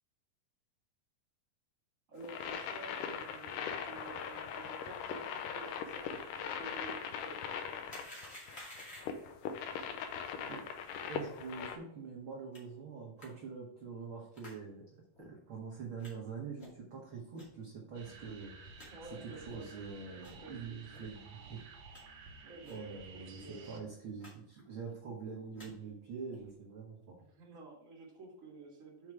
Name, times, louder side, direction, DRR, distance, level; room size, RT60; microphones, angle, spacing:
voice 1, 2.1-7.0 7.2-7.4 18.9-20.8 22.4-23.0 23.4-23.7 27.2-29.1, right 3 dB, 30° right, -3 dB, 2.2 m, -51 dB
sound 1, 2.2-11.8, left 7 dB, 85° left, 2.3 m, -40 dB
sound 2, 7.9-9.3 12.5-12.6 13.2-13.3 14.3-14.6 15.1-15.2 16.0-16.1 16.6-16.8 17.3-17.5 18.0-18.1 18.4-18.5 18.8-18.9 19.4-19.6 20.2-20.4 20.9-21.0 21.5-22.0 22.6-22.8 23.1-23.2 23.5-23.7 24.2-24.3 24.6-25.0 25.4-25.7 26.3-26.5, left 1 dB, 20° left, 2.1 m, -52 dB
voice 2, 11.1-14.8 15.2-18.6 19.4-21.6 22.6-27.2, right 5 dB, 55° right, -3 dB, 1.7 m, -45 dB
sound 3, 17.9-23.8, right 4 dB, 90° right, 1.0 m, -53 dB
6.1 x 5.6 x 4.8 m, 0.72 s
omnidirectional pair, 3.6 m